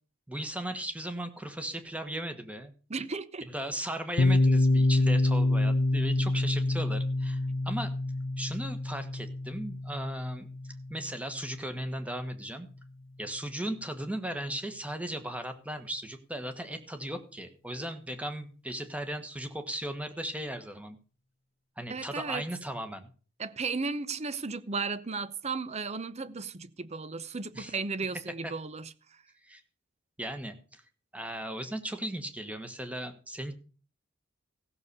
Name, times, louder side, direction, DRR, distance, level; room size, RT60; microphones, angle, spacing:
voice 1, 0.3-2.7 3.5-7.4 7.6-7.9 8.4-10.5 10.9-12.7 13.2-21.0 21.8-23.1 27.5-27.8 28.4-28.5 29.4-29.6 30.2-30.8 31.1-33.5, right 1 dB, 5° right, 1.5 m, -37 dB
voice 2, 2.9-3.5 21.9-22.4 23.4-28.9, right 4 dB, 35° right, 0.7 m, -35 dB
Piano, 4.2-11.6, left 2 dB, 65° left, 0.9 m, -27 dB
15.5 x 6.8 x 6.9 m
head